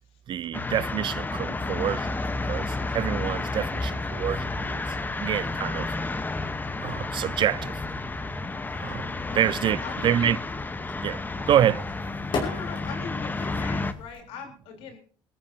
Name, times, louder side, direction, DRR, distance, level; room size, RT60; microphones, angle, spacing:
voice 1, 0.3-2.2 2.5-2.7 2.9-4.8 5.2-5.9 6.8-7.7 8.8-9.0 9.3-10.4 11.0-11.2 11.5-11.8, right 10 dB, 55° right, 0.6 m, -26 dB
sound 1, 0.5-13.9, left 2 dB, 20° left, 1.2 m, -31 dB
sound 2, 1.6-14.2, left 4 dB, 55° left, 5.8 m, -42 dB
voice 2, 9.3-10.4 12.4-15.0, left 6 dB, 80° left, 4.0 m, -40 dB
21.5 x 13.5 x 2.9 m
supercardioid pair, 75°, 10 cm